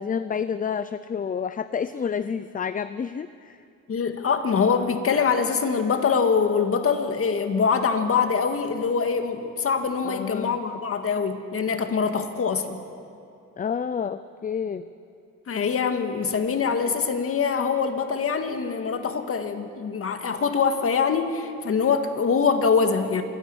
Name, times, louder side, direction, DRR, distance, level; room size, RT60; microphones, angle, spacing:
voice 1, 0.0-3.6 10.0-10.6 13.6-14.8, left 7 dB, 30° left, 13 dB, 0.5 m, -29 dB
voice 2, 3.9-12.8 15.5-23.2, left 5 dB, 50° left, 7 dB, 1.9 m, -24 dB
26.0 x 10.5 x 9.6 m, 2.6 s
cardioid pair, 90°, 30 cm